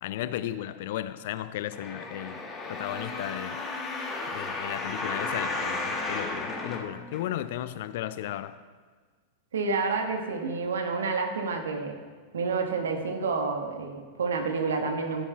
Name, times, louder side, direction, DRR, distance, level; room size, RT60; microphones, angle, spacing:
voice 1, 0.0-2.4 2.7-3.6 4.3-8.6, left 12 dB, 55° left, 0.4 m, -35 dB
sound 1, 1.7-7.6 8.2-8.3, left 3 dB, 20° left, 1.3 m, -34 dB
voice 2, 9.5-11.9 12.3-15.3, right 4 dB, 65° right, 1.3 m, -29 dB
14.5 x 10.5 x 2.3 m
figure-of-eight pair, 90°, 0 cm